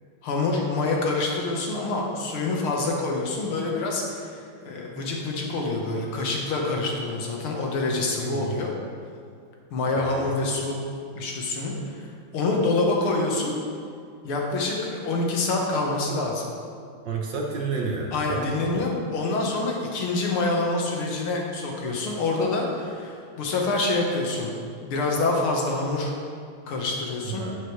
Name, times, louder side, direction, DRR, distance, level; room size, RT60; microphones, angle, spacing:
voice 1, 0.2-8.7 9.7-10.8 11.2-12.1 12.3-13.6 14.2-16.4 18.1-24.5 24.8-26.1 26.7-27.5, left 3 dB, 85° left, -1 dB, 2.2 m, -26 dB
voice 2, 8.2-8.5 10.0-10.3 17.0-18.7 27.3-27.6, right 4 dB, 65° right, 0 dB, 1.4 m, -31 dB
11.0 x 8.2 x 3.2 m, 2.3 s
omnidirectional pair, 2.3 m